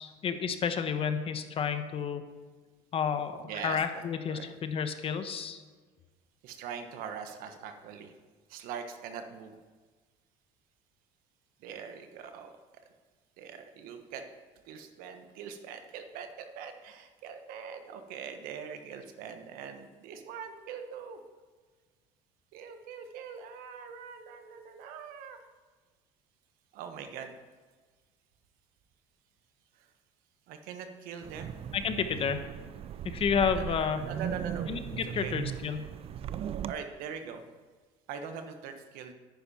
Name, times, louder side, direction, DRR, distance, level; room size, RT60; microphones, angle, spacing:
voice 1, 0.0-2.2 2.9-5.6 31.7-32.4 33.0-34.1 34.7-35.9, left 6 dB, 40° left, 9 dB, 1.0 m, -31 dB
voice 2, 3.4-4.5 6.4-8.1 8.5-9.5 11.6-12.5 13.4-14.2 14.6-21.2 22.5-25.4 26.7-27.3 29.8-29.9 30.5-31.5 33.5-35.4 36.7-37.4 38.1-39.1, right 7 dB, 75° right, 7 dB, 1.3 m, -42 dB
Wind, 31.2-36.7, right 9 dB, 40° right, 0.4 m, -38 dB
10.5 x 9.7 x 4.3 m, 1.4 s
cardioid pair, 115°, 15 cm